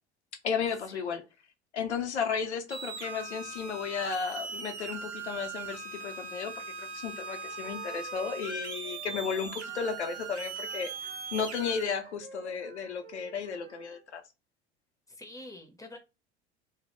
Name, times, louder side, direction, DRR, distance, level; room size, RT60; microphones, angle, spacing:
voice 1, 0.4-1.2 1.7-10.9 11.3-14.2, left 6 dB, 80° left, 0.6 m, -34 dB
sound 1, 2.7-11.9, right 4 dB, 85° right, 0.5 m, -40 dB
Wind instrument woodwind instrument, 7.2-10.2 10.6-14.0, right 5 dB, 40° right, 0.8 m, -51 dB
voice 2, 15.1-16.0, left 1 dB, 10° left, 0.5 m, -47 dB
2.0 x 2.0 x 2.9 m
figure-of-eight pair, 70°, 33 cm